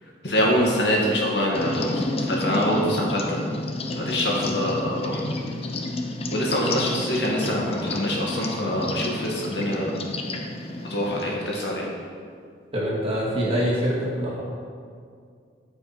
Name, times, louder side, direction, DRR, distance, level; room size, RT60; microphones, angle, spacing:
voice 1, 0.2-3.4 3.9-5.2 6.3-10.0 10.9-11.9, equal, 70° left, -3 dB, 1.9 m, -25 dB
sound 1, 1.5-11.4, left 2 dB, 35° left, 0.7 m, -30 dB
voice 2, 12.7-14.4, equal, 35° right, -6 dB, 2.2 m, -24 dB
13.5 x 5.1 x 4.4 m, 2.2 s
head